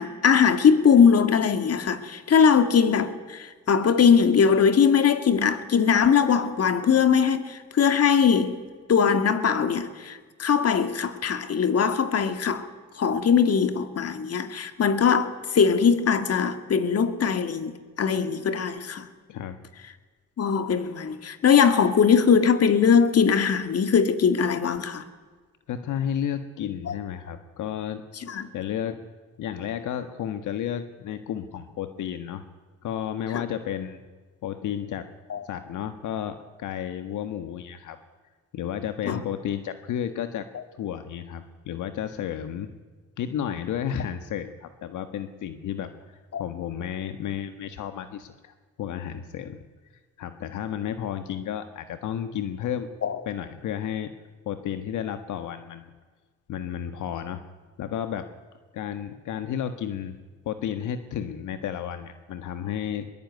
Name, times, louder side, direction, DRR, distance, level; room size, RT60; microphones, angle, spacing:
voice 1, 0.0-8.5 8.9-12.7 13.0-19.1 20.4-25.0 26.9-27.0 28.3-28.5 33.3-33.4 35.3-35.4 39.1-39.2 46.3-46.4 53.0-53.2, left 6 dB, 55° left, 2.3 m, -21 dB
voice 2, 19.3-19.6 25.7-28.0 28.5-29.0 29.4-32.4 32.8-34.0 34.4-35.1 35.4-38.0 38.5-40.5 40.8-42.7 43.2-49.6 50.2-52.9 53.2-54.1 54.4-55.9 56.5-57.4 57.8-58.3 58.7-60.1 60.4-63.1, left 9 dB, 80° left, 1.5 m, -32 dB
23.5 x 22.0 x 9.5 m
cardioid pair, 90°, 30 cm